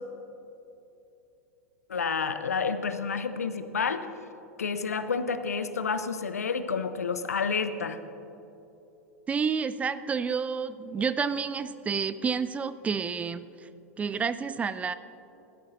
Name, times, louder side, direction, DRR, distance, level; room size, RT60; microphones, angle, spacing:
voice 1, 1.9-4.1 4.6-8.0, left 5 dB, 80° left, 11 dB, 0.6 m, -29 dB
voice 2, 9.3-13.7 14.0-14.9, right 6 dB, 15° right, 14 dB, 0.3 m, -30 dB
14.0 x 13.0 x 2.6 m, 3.0 s
figure-of-eight pair, 90°, 8 cm